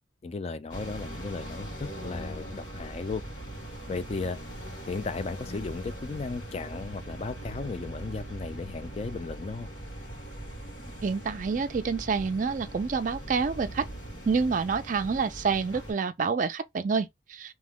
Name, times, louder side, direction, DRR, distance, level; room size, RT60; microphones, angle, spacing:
voice 1, 0.2-3.2 3.9-4.4 4.9-9.7, left 4 dB, 35° left, 0.3 m, -35 dB
sound 1, 0.7-15.9, right 1 dB, 85° left, 1.4 m, -41 dB
voice 2, 11.0-13.9 14.3-17.5, right 5 dB, 45° right, 0.4 m, -28 dB
2.8 x 2.0 x 3.5 m
head